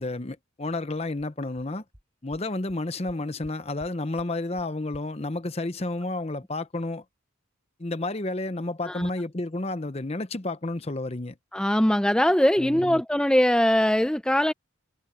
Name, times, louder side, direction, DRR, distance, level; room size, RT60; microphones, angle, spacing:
voice 1, 0.0-1.8 2.2-7.0 7.8-11.4 12.6-13.0, left 2 dB, 30° left, 0.8 m, -31 dB
sound 1, 1.2-1.3 1.6-1.7 1.9-2.0 2.3-2.4 2.7-2.8 3.1-3.5 3.8-3.9 4.2-4.3 4.6-4.7 4.9-5.0, equal, 25° right, 5.4 m, -50 dB
voice 2, 11.5-14.5, equal, 5° left, 0.4 m, -21 dB
head